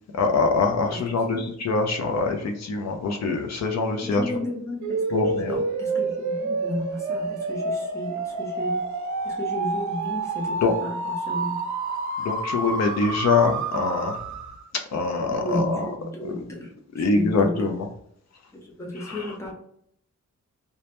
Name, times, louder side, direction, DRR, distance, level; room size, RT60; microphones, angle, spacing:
voice 1, 0.1-4.2 5.1-5.6 10.6-10.7 12.2-14.2 14.9-15.9 16.2-16.4 16.9-17.9 19.0-19.3, left 4 dB, 60° left, 4 dB, 0.5 m, -24 dB
voice 2, 4.0-8.8 9.2-11.6 15.4-17.8 18.5-19.5, left 1 dB, 10° left, -1 dB, 0.5 m, -33 dB
sound 1, 4.8-14.7, right 3 dB, 70° right, 0.4 m, -29 dB
2.1 x 2.1 x 2.8 m, 0.69 s
wide cardioid pair, 160°, 30 cm